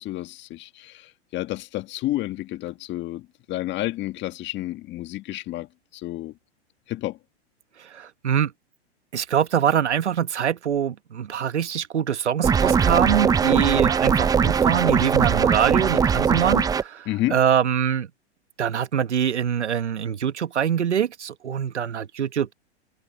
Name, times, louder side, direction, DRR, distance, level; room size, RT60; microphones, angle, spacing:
voice 1, 0.0-5.7 5.9-6.3 6.9-7.2 17.1-17.4, left 16 dB, 35° left, 1.8 m, -30 dB
voice 2, 7.9-8.5 9.1-18.1 18.6-22.5, right 8 dB, 90° right, 1.5 m, -24 dB
sound 1, 12.4-16.8, right 6 dB, 10° right, 0.6 m, -20 dB
hypercardioid pair, 115°, 34 cm